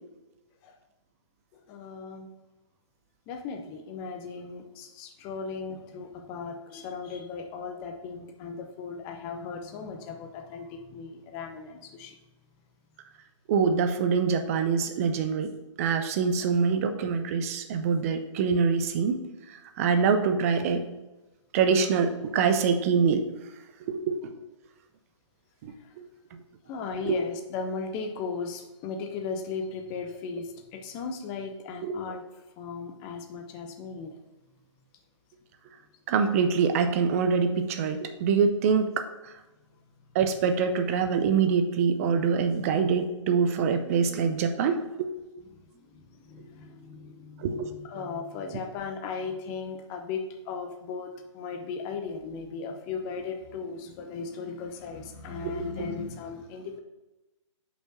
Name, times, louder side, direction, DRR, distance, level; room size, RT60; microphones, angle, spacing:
voice 1, 1.7-2.3 3.3-12.1 26.7-32.2 32.6-34.1 45.9-56.8, left 5 dB, 20° left, 4 dB, 0.7 m, -37 dB
voice 2, 13.5-15.5 15.8-20.8 21.5-23.2 23.9-24.3 25.6-26.1 27.1-27.2 31.8-31.9 36.1-39.3 40.1-45.1 47.4-47.7 55.4-55.8, right 6 dB, 30° right, 7 dB, 0.6 m, -25 dB
5.6 x 4.4 x 5.9 m, 1.1 s
figure-of-eight pair, 135°, 16 cm